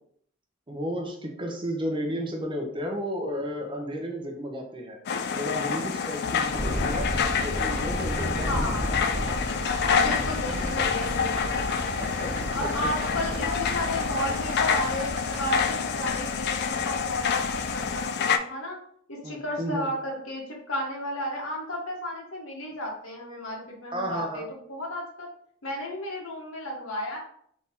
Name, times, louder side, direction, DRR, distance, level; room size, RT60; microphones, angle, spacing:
voice 1, 0.7-5.0 5.4-7.1 7.4-8.5 10.5-10.9 12.0-12.9 19.2-19.9 23.9-24.5, equal, 25° right, 1 dB, 0.7 m, -33 dB
sound 1, 5.1-18.4, left 6 dB, 50° left, 0.4 m, -28 dB
sound 2, 6.4-15.7, right 2 dB, 85° right, 0.6 m, -39 dB
sound 3, 6.5-18.1, equal, 10° left, 1.0 m, -35 dB
voice 2, 8.4-8.8 10.0-11.8 12.5-18.8 19.1-25.3 25.6-27.2, left 1 dB, 70° left, -1 dB, 1.3 m, -33 dB
4.1 x 2.8 x 3.6 m, 0.64 s
head